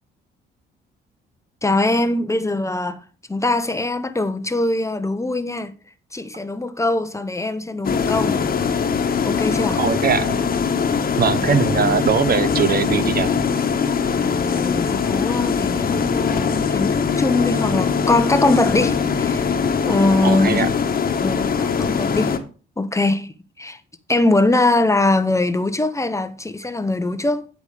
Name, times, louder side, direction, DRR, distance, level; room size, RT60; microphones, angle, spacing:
voice 1, 1.6-3.0 3.3-5.7 6.1-8.4 9.2-9.8 14.2-19.5 19.9-20.6 21.2-22.4 22.8-23.3 23.6-23.8 24.1-27.5, left 2 dB, 15° left, 0.9 m, -22 dB
sound 1, 7.8-22.4, left 6 dB, 45° left, 1.4 m, -21 dB
voice 2, 9.8-10.4 11.2-13.3 20.2-20.7, right 7 dB, 50° right, 0.9 m, -20 dB
10.5 x 5.0 x 5.0 m
cardioid pair, 90°, 20 cm